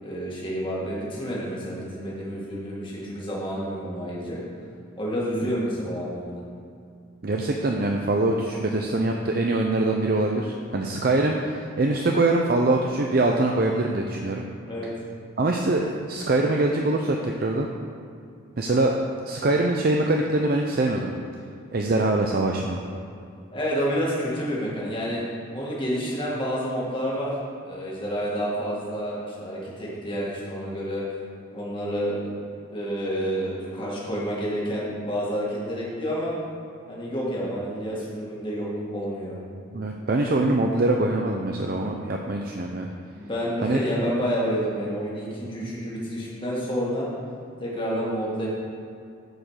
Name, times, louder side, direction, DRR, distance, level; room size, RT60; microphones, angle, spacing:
voice 1, 0.0-4.4 5.0-6.4 14.6-14.9 23.5-25.2 25.5-27.3 27.7-31.0 31.5-32.4 32.7-36.3 36.9-39.4 43.2-47.1 47.6-48.5, equal, 25° left, -6 dB, 1.9 m, -29 dB
voice 2, 7.2-14.4 15.4-17.7 18.6-18.9 19.3-21.1 21.7-22.8 39.7-42.9 43.6-43.8 45.6-45.7, right 2 dB, 45° right, 1 dB, 0.5 m, -23 dB
8.8 x 5.1 x 6.4 m, 2.5 s
head